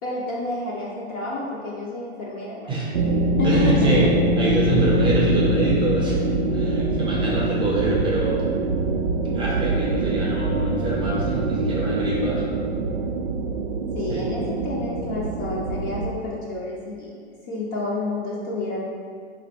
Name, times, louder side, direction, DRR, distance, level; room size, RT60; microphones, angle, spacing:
voice 1, 0.0-2.9 3.4-4.1 13.9-17.1 17.5-18.8, left 2 dB, 30° left, -5 dB, 0.6 m, -29 dB
sound 1, 2.9-16.1, right 2 dB, 70° right, 0.5 m, -24 dB
voice 2, 3.4-8.4 9.2-12.5 14.1-14.2, right 2 dB, 15° right, -5 dB, 0.8 m, -24 dB
3.8 x 2.6 x 4.2 m, 2.2 s
hypercardioid pair, 135°, 32 cm